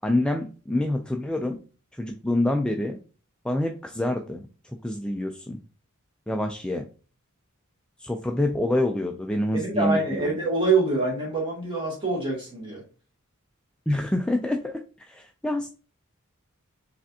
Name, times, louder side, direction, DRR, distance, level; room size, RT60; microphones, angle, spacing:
voice 1, 0.0-1.6 2.0-3.0 3.4-4.4 4.8-5.6 6.3-6.9 8.0-10.4 13.9-15.7, left 1 dB, 5° left, 3 dB, 0.4 m, -26 dB
voice 2, 9.5-12.8, right 3 dB, 25° right, -3 dB, 2.3 m, -25 dB
5.0 x 3.3 x 2.7 m, 0.36 s
head